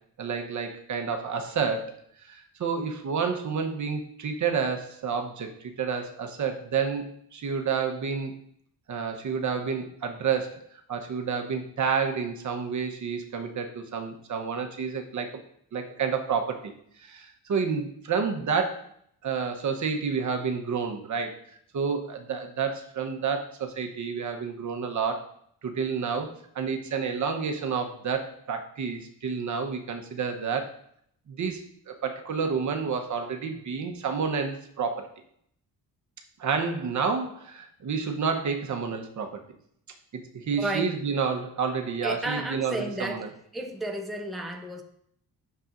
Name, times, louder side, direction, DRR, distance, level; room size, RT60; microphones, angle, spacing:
voice 1, 0.2-2.0 2.3-8.3 8.9-15.3 15.7-16.7 17.0-18.9 19.2-21.4 21.7-25.2 25.6-30.7 31.3-31.6 31.9-35.1 36.4-39.4 40.1-43.3, right 6 dB, 50° right, 4 dB, 1.0 m, -29 dB
voice 2, 40.6-40.9 42.0-43.3 43.5-44.8, right 1 dB, ahead, 2 dB, 0.7 m, -32 dB
9.7 x 6.8 x 2.6 m, 0.68 s
cardioid pair, 130°, 37 cm